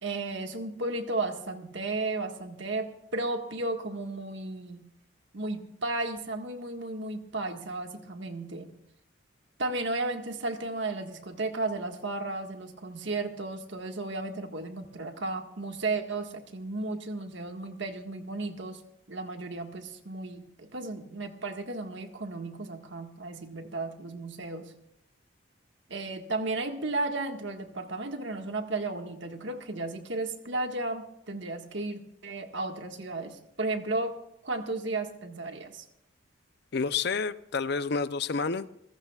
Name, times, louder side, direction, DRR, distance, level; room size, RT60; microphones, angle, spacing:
voice 1, 0.0-4.8 5.3-8.7 9.6-18.8 19.1-24.7 25.9-34.2 34.4-35.8, right 2 dB, 60° right, 4 dB, 1.6 m, -34 dB
voice 2, 36.7-38.7, left 4 dB, 50° left, 14 dB, 0.6 m, -29 dB
28.5 x 15.5 x 2.4 m, 0.75 s
head